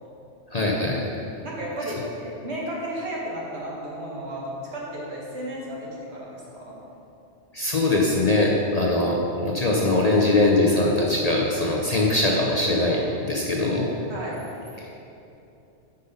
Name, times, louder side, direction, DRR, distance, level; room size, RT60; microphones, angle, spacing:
voice 1, 0.5-1.1 7.5-13.9 14.8-14.9, left 2 dB, 40° left, -2 dB, 0.7 m, -22 dB
voice 2, 1.4-6.8 14.1-14.4, right 1 dB, 60° right, -4 dB, 1.9 m, -33 dB
7.8 x 5.4 x 5.5 m, 2.8 s
omnidirectional pair, 1.2 m